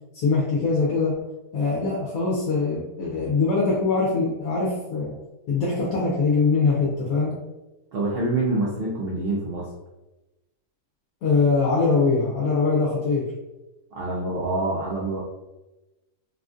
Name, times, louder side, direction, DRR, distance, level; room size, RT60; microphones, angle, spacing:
voice 1, 0.1-1.1 1.5-5.2 5.5-7.4 11.2-13.3, left 4 dB, 70° left, -4 dB, 1.1 m, -22 dB
voice 2, 7.9-9.7 13.9-15.2, right 2 dB, 70° right, -4 dB, 0.5 m, -26 dB
3.5 x 2.5 x 2.4 m, 1.0 s
omnidirectional pair, 1.6 m